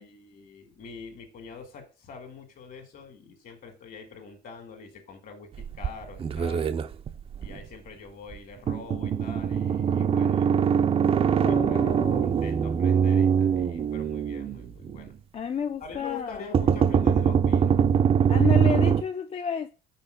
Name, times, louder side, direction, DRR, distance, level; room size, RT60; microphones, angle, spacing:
voice 1, 0.0-6.7 7.4-10.5 11.3-11.9 12.2-15.1 15.8-17.8 18.2-18.6, left 5 dB, 60° left, 1.9 m, -44 dB
sound 1, 5.5-7.6 8.3-8.4 8.7-15.1 16.5-19.0, right 7 dB, 35° right, 0.4 m, -23 dB
voice 2, 11.4-12.3 15.3-16.5 18.3-19.7, left 7 dB, 35° left, 0.4 m, -31 dB
5.7 x 4.1 x 5.1 m
cardioid pair, 110°, 17 cm